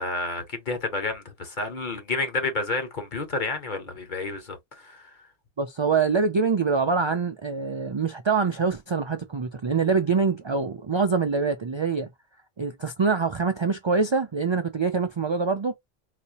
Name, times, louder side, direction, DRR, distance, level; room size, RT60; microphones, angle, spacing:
voice 1, 0.0-5.2, left 3 dB, 50° left, 1.3 m, -30 dB
voice 2, 5.6-12.1 12.6-15.7, right 5 dB, 50° right, 0.3 m, -24 dB
4.1 x 2.8 x 2.8 m
omnidirectional pair, 1.0 m